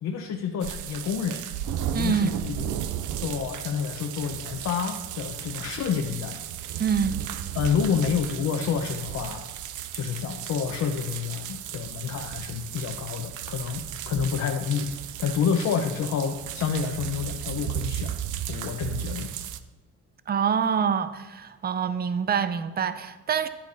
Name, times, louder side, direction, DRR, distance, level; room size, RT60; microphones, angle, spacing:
voice 1, 0.0-1.4 1.9-2.7 3.2-6.4 7.6-9.4 9.9-14.9 15.2-18.1 18.5-19.3, left 7 dB, 65° left, 0.8 m, -28 dB
sound 1, 0.6-19.6, right 11 dB, 80° right, 0.5 m, -35 dB
voice 2, 1.9-2.4 6.8-7.2 20.3-23.5, right 7 dB, 30° right, 0.5 m, -26 dB
10.0 x 8.5 x 2.6 m
cardioid pair, 90°, 30 cm